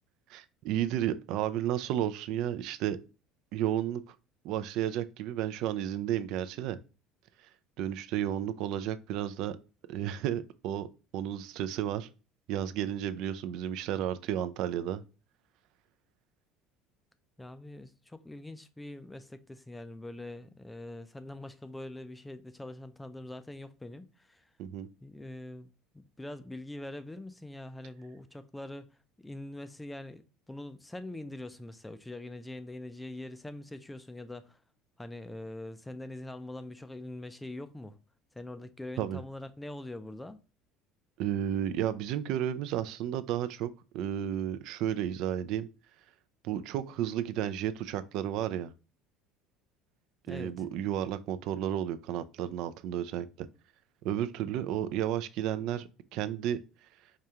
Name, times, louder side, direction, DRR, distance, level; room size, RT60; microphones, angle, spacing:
voice 1, 0.3-3.0 3.5-4.2 4.4-6.8 7.8-9.6 9.9-10.9 11.1-12.1 12.5-15.0 24.6-24.9 39.0-39.2 41.2-45.7 46.4-48.7 50.3-53.5 54.0-56.6, right 11 dB, 65° right, 0.3 m, -32 dB
voice 2, 17.4-28.9 29.2-34.6 35.0-38.0 38.4-40.4 50.3-50.5, left 1 dB, 10° left, 0.4 m, -43 dB
4.7 x 2.3 x 2.8 m
cardioid pair, 125°, 0 cm